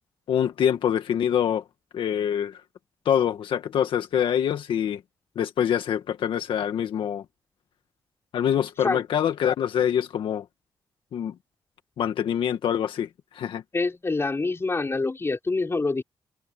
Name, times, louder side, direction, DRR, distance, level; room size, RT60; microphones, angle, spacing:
voice 1, 0.3-1.6 1.9-2.6 3.0-5.0 5.3-7.2 8.3-10.4 11.1-11.3 12.0-13.1 13.3-13.6, left 9 dB, 80° left, 1.7 m, -25 dB
voice 2, 13.7-16.0, left 3 dB, 30° left, 5.1 m, -26 dB
cardioid pair, 75°, 9 cm